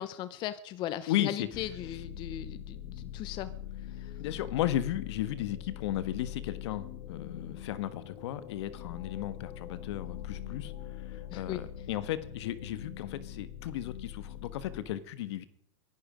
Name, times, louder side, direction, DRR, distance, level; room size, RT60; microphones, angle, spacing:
voice 1, 0.0-3.5 4.0-4.1 11.3-11.6, left 12 dB, 30° left, 14 dB, 0.7 m, -38 dB
voice 2, 1.1-1.5 4.2-10.7 11.1-15.5, left 13 dB, 65° left, 15 dB, 1.3 m, -34 dB
sound 1, 1.5-14.8, left 10 dB, 45° left, 2.4 m, -43 dB
23.0 x 11.0 x 5.0 m, 0.65 s
supercardioid pair, 150°, 15 cm